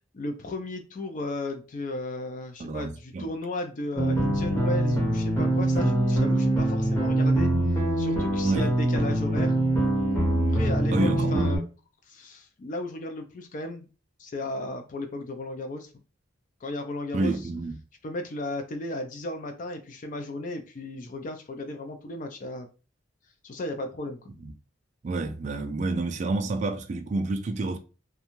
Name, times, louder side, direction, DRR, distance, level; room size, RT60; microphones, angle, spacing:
voice 1, 0.1-7.5 8.0-9.5 10.3-11.6 12.1-13.9 14.2-15.9 16.6-17.4 18.0-22.7 23.4-24.2, left 1 dB, 40° left, 0.4 m, -35 dB
voice 2, 2.6-3.3 8.4-8.7 10.9-11.5 17.1-17.8 24.4-24.5 25.0-27.8, right 2 dB, 35° right, 0.3 m, -28 dB
sound 1, 4.0-11.6, right 1 dB, 15° left, 0.7 m, -24 dB
2.5 x 2.2 x 2.9 m
head